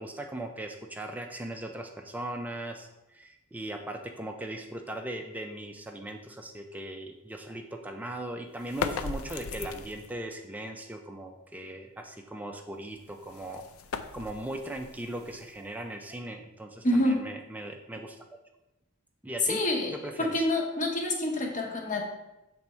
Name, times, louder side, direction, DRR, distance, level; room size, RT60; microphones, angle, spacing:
voice 1, 0.0-13.6 14.1-18.2 19.2-19.6 19.9-20.4, right 1 dB, 10° right, 3 dB, 0.4 m, -39 dB
sound 1, 8.6-10.2 12.9-15.9, left 6 dB, 80° left, 0.4 m, -38 dB
voice 2, 16.8-17.2 19.4-22.0, left 1 dB, 35° left, 1 dB, 1.0 m, -27 dB
7.4 x 3.5 x 4.3 m, 0.96 s
head